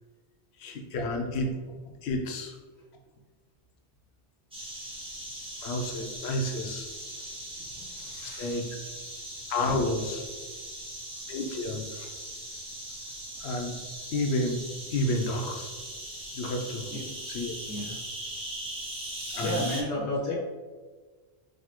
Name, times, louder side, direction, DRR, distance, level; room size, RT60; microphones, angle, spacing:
voice 1, 0.6-1.6 2.0-2.6 5.6-6.9 8.2-8.6 9.5-10.2 11.3-12.0 13.4-13.8 14.1-15.7 16.3-16.9 17.3-17.9 19.3-19.7, left 1 dB, 75° left, 2 dB, 0.9 m, -30 dB
sound 1, 4.5-19.8, right 1 dB, 5° right, 0.6 m, -40 dB
voice 2, 7.7-8.6 11.9-12.1 16.9-17.0 17.7-18.0 19.4-20.3, left 1 dB, 20° left, -6 dB, 0.9 m, -33 dB
4.2 x 2.7 x 2.9 m, 1.4 s
omnidirectional pair, 1.1 m